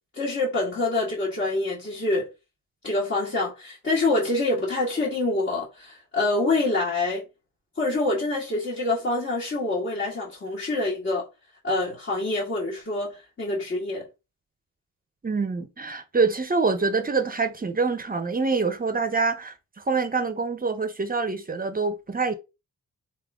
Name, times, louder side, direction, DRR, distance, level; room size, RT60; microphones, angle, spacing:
voice 1, 0.2-2.3 2.8-7.2 7.8-11.3 11.6-14.1, left 2 dB, 45° left, 2.0 m, -26 dB
voice 2, 15.2-22.3, right 4 dB, 30° right, 0.6 m, -25 dB
4.1 x 3.6 x 3.6 m
wide cardioid pair, 140°, 31 cm